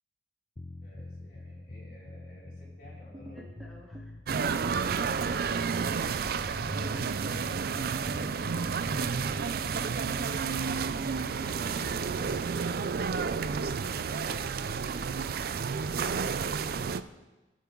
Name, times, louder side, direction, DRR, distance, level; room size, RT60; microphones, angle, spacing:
sound 1, 0.6-12.5, left 2 dB, 30° left, 0.5 m, -45 dB
voice 1, 0.8-3.4 8.3-9.9 10.3-12.0 15.0-15.2 16.7-16.9, equal, 55° left, -6 dB, 4.4 m, -55 dB
sound 2, 3.1-4.1 4.5-5.1 5.9-6.5 6.8-7.9 8.2-8.8 9.6-10.1, equal, 25° right, 0.8 m, -47 dB
voice 2, 3.3-4.2 10.5-10.8 11.1-11.9 14.2-14.7 16.0-16.4, left 1 dB, ahead, -2 dB, 1.1 m, -53 dB
sound 3, 4.3-17.0, right 5 dB, 55° right, 0.4 m, -31 dB
19.0 x 7.1 x 3.8 m, 1.1 s
head